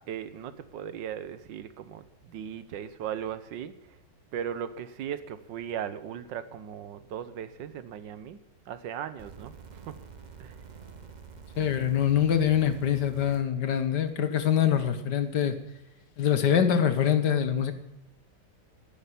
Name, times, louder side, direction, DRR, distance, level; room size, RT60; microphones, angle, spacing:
voice 1, 0.1-3.7 4.3-8.4 8.7-9.9 10.4-10.6, right 9 dB, 85° right, 13 dB, 1.6 m, -37 dB
sound 1, 9.2-13.4 14.4-14.5, right 6 dB, 30° right, 0.9 m, -47 dB
voice 2, 11.6-15.6 16.2-17.7, left 9 dB, 70° left, 10 dB, 1.8 m, -24 dB
10.5 x 9.5 x 9.9 m, 0.87 s
omnidirectional pair, 1.9 m